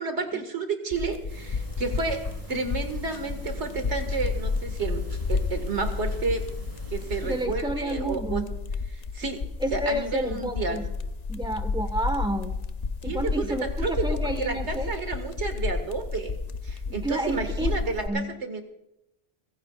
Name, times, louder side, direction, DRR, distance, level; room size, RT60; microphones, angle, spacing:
voice 1, 0.0-5.0 5.3-6.5 6.9-8.4 8.9-9.4 9.7-10.8 13.0-13.5 13.8-16.4 16.6-18.6, right 4 dB, 85° right, 6 dB, 2.1 m, -31 dB
sound 1, 0.9-18.1, left 4 dB, 45° left, 0.7 m, -31 dB
sound 2, 1.3-7.5, right 2 dB, 30° right, 2.5 m, -46 dB
voice 2, 7.2-8.5 9.6-10.9 11.3-12.6 13.0-14.9 16.9-17.7 18.0-18.3, right 1 dB, 5° right, 7 dB, 1.3 m, -30 dB
24.0 x 15.5 x 2.4 m, 0.88 s
omnidirectional pair, 1.1 m